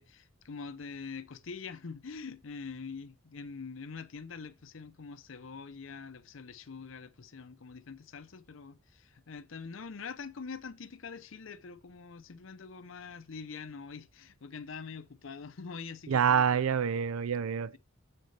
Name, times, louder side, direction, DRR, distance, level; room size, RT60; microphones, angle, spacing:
voice 1, 0.0-16.5, left 5 dB, 70° left, 0.6 m, -44 dB
voice 2, 16.1-17.8, right 7 dB, 90° right, 0.4 m, -27 dB
7.5 x 6.6 x 3.3 m
head